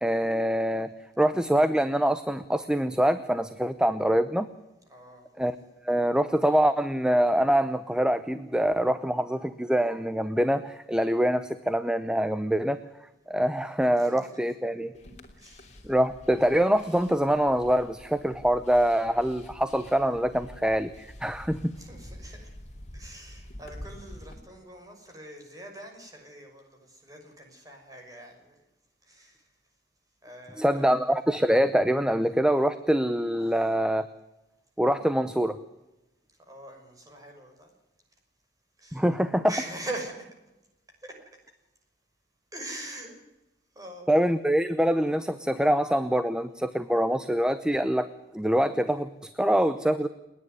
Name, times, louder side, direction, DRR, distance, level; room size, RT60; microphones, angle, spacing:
voice 1, 0.0-4.5 5.4-5.5 5.8-12.8 13.3-14.9 15.8-21.7 30.6-34.0 34.8-35.6 38.9-39.5 44.1-48.1 48.3-50.1, equal, 5° right, 12 dB, 0.7 m, -24 dB
voice 2, 4.9-5.2 14.0-14.5 15.4-15.7 21.8-22.5 22.9-28.6 29.0-29.4 30.2-31.0 36.5-37.7 38.8-39.1 39.5-40.3 41.0-41.1 42.5-43.2 43.7-44.1, right 1 dB, 20° right, 2 dB, 6.0 m, -42 dB
sound 1, 14.9-24.4, left 1 dB, 40° left, 3.3 m, -47 dB
30.0 x 10.5 x 9.5 m, 0.96 s
head